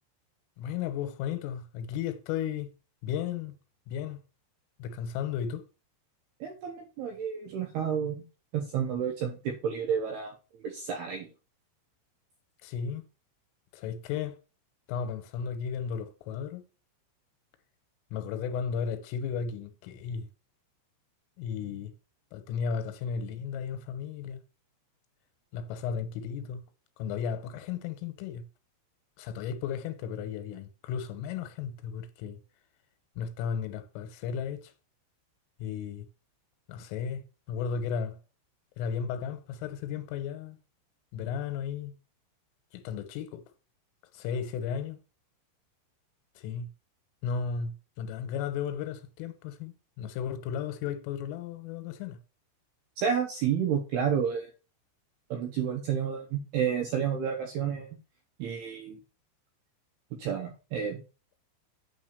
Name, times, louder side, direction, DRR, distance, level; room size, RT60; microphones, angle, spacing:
voice 1, 0.6-2.7 3.0-3.5 3.9-4.2 4.8-5.6 12.6-13.0 13.7-14.4 14.9-16.6 18.1-20.3 21.4-21.9 22.3-24.4 25.5-26.6 27.0-28.4 29.2-32.4 33.2-34.7 35.6-36.1 36.7-38.2 38.8-40.6 41.1-41.9 42.7-43.4 44.1-45.0 46.4-46.7 47.2-52.2, left 7 dB, 80° left, 3.3 m, -34 dB
voice 2, 6.4-8.2 8.5-10.3 10.6-11.3 53.0-54.5 55.3-57.9 58.4-59.0 60.2-61.0, right 8 dB, 75° right, 2.4 m, -30 dB
8.9 x 3.8 x 6.7 m
omnidirectional pair, 5.9 m